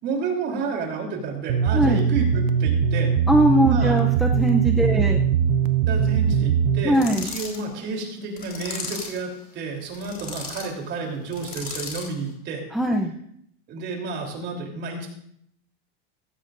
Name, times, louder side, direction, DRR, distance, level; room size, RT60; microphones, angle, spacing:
voice 1, 0.0-3.1 3.6-4.0 4.8-5.2 5.9-12.6 13.7-15.1, right 4 dB, 35° right, 1 dB, 3.4 m, -31 dB
sound 1, 1.5-6.8, right 7 dB, 55° right, 0.9 m, -21 dB
voice 2, 3.3-5.2 6.8-7.3 12.7-13.1, right 1 dB, ahead, 1 dB, 0.5 m, -20 dB
sound 2, 6.9-7.6 8.4-9.2 9.9-10.7 11.3-12.1, left 4 dB, 30° left, 3.9 m, -35 dB
16.5 x 15.0 x 2.6 m, 0.69 s
supercardioid pair, 155°, 31 cm